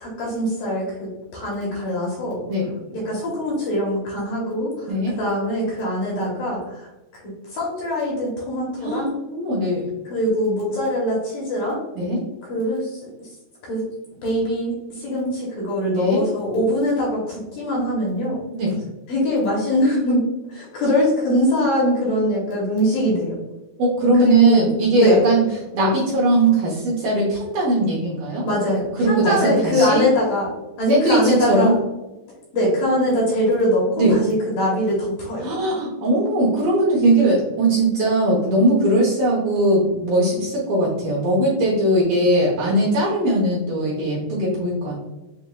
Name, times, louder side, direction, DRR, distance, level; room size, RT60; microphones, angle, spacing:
voice 1, 0.0-2.4 2.9-9.1 10.1-11.8 12.5-13.3 13.6-13.9 14.2-18.4 19.1-23.3 24.1-24.7 25.0-25.2 28.4-30.5 30.8-31.8 32.5-35.8, equal, 70° left, -5 dB, 2.2 m, -23 dB
voice 2, 8.8-9.9 12.0-12.2 15.9-16.2 18.5-18.8 23.8-25.4 25.7-28.5 29.0-30.0 30.9-31.8 34.0-34.2 35.4-44.9, right 1 dB, 70° right, -5 dB, 2.2 m, -19 dB
7.2 x 2.7 x 2.2 m, 1.1 s
omnidirectional pair, 4.9 m